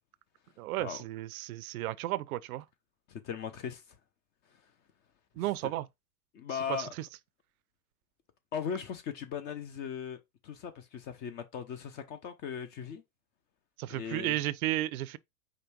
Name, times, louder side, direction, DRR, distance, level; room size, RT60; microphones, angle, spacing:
voice 1, 0.6-2.6 5.4-5.8 6.7-6.8 13.8-15.2, right 15 dB, 65° right, 0.5 m, -33 dB
voice 2, 3.1-4.0 4.5-4.7 5.4-5.7 6.3-6.9 8.5-13.0 13.9-14.4, left 7 dB, 25° left, 0.4 m, -39 dB
5.1 x 2.2 x 4.4 m
hypercardioid pair, 105°, 48 cm